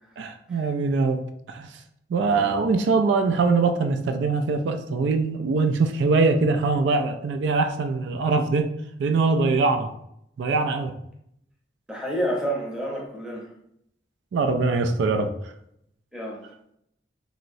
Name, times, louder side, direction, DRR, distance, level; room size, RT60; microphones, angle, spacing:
voice 1, 0.2-1.2 1.5-1.7 2.1-8.7 9.0-9.9 10.4-10.9 14.3-15.3, right 4 dB, 80° right, 6 dB, 0.3 m, -22 dB
voice 2, 11.9-13.5 16.1-16.4, right 1 dB, 5° right, -3 dB, 0.7 m, -29 dB
3.0 x 2.8 x 2.5 m, 0.74 s
head